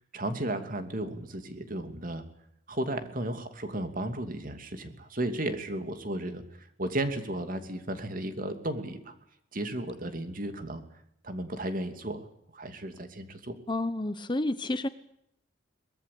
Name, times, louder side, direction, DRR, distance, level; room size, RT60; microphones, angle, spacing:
voice 1, 0.0-2.2 2.7-9.1 9.5-10.8 11.2-12.3 12.5-13.6, right 1 dB, 45° right, 8 dB, 2.8 m, -34 dB
voice 2, 13.7-14.9, left 2 dB, 25° left, 13 dB, 1.0 m, -30 dB
23.5 x 20.5 x 8.6 m, 0.75 s
head